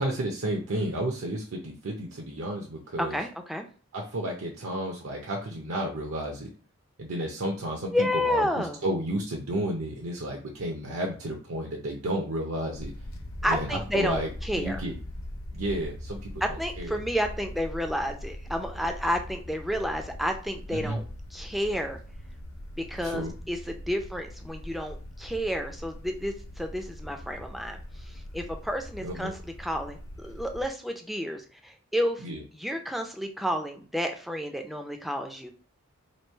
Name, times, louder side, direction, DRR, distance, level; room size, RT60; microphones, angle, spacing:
voice 1, 0.0-3.2 3.9-6.5 7.0-12.9 13.4-14.9 15.5-17.0 20.7-21.0 23.0-23.3 29.0-29.3 32.2-32.4, right 1 dB, 70° right, 0 dB, 0.6 m, -32 dB
voice 2, 3.0-3.7 7.9-8.8 13.4-14.8 16.4-21.0 21.3-22.0 22.8-27.8 28.1-29.3 29.6-32.2 32.5-35.5, equal, ahead, 5 dB, 0.4 m, -30 dB
sound 1, 12.7-30.7, left 1 dB, 65° left, 0.6 m, -41 dB
3.0 x 2.7 x 4.4 m, 0.39 s
head